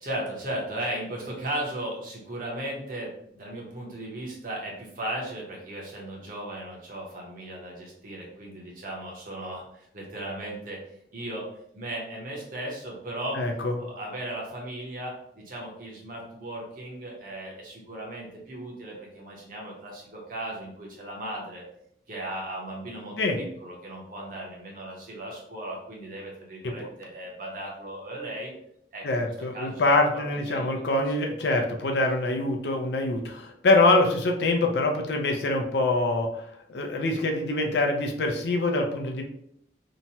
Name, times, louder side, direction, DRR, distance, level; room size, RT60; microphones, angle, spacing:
voice 1, 0.0-10.8 11.1-11.5 11.7-13.4 13.8-21.6 22.1-28.5 28.9-29.2 29.5-30.8, right 1 dB, 50° right, -2 dB, 0.8 m, -36 dB
voice 2, 13.3-13.8 23.2-23.4 26.6-26.7 29.0-36.4 36.7-39.2, left 2 dB, 65° left, 3 dB, 0.5 m, -24 dB
2.9 x 2.2 x 2.7 m, 0.73 s
head